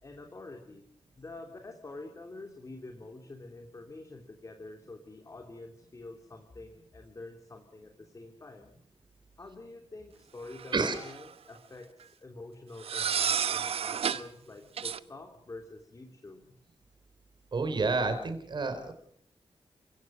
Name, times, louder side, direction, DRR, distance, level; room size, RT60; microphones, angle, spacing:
voice 1, 0.0-0.8 1.2-8.8 9.4-16.6, left 2 dB, 30° left, 3 dB, 3.1 m, -47 dB
sound 1, 10.6-11.3 12.8-14.3 14.8-15.0, right 7 dB, 75° right, 1.0 m, -31 dB
voice 2, 17.5-18.9, right 3 dB, 50° right, 8 dB, 4.4 m, -29 dB
30.0 x 17.5 x 6.2 m, 0.64 s
wide cardioid pair, 110°, 10 cm